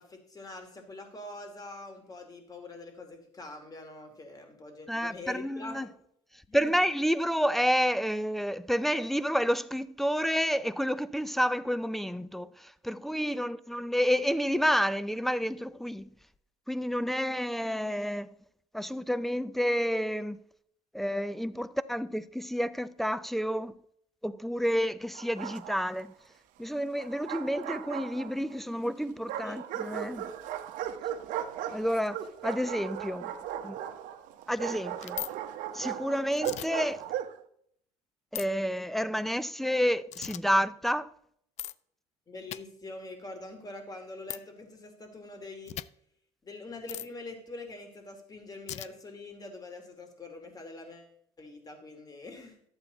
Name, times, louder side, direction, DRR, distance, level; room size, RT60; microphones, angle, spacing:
voice 1, 0.0-5.9 6.5-6.8 29.4-29.6 42.3-45.7 46.4-51.1 51.4-52.6, left 2 dB, 25° left, 2.7 m, -44 dB
voice 2, 4.9-5.9 6.5-16.1 16.7-18.3 18.7-20.4 20.9-23.7 24.2-26.1 26.6-30.3 31.7-33.3 33.6-33.8 34.5-35.2 35.7-37.0 38.3-41.1, equal, ahead, 0.5 m, -29 dB
Bark, 25.1-26.1 27.0-28.6 29.3-37.4, right 10 dB, 70° right, 0.9 m, -37 dB
sound 1, 35.0-35.3 36.3-36.7 38.4-38.5 40.1-40.4 41.6-41.7 42.5-42.6 44.3-44.4 45.7-45.9 46.9-47.1 48.7-48.9, left 13 dB, 55° left, 0.4 m, -37 dB
11.5 x 8.1 x 4.0 m
supercardioid pair, 90°, 14 cm